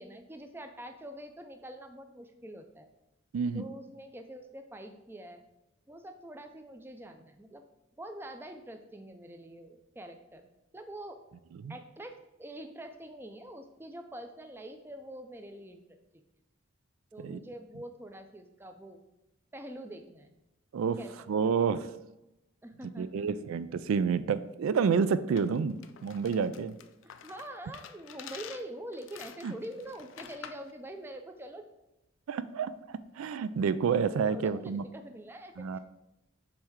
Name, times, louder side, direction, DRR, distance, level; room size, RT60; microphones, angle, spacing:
voice 1, 0.0-2.9 3.5-5.4 5.9-7.6 8.0-10.5 10.7-11.2 11.7-15.8 16.1-16.2 17.1-19.0 19.5-20.3 21.0-21.1 22.6-23.5 27.0-31.6 34.3-35.8, right 1 dB, 10° right, 6 dB, 0.4 m, -45 dB
voice 2, 3.3-3.6 11.6-11.8 17.2-17.4 20.7-21.0 21.3-21.9 23.0-26.7 29.4-29.5 32.3-32.7 33.2-34.8 35.6-35.8, right 6 dB, 85° right, 14 dB, 0.3 m, -29 dB
sound 1, 25.4-30.7, left 8 dB, 65° left, 0.4 m, -49 dB
7.1 x 3.2 x 4.6 m, 0.92 s
head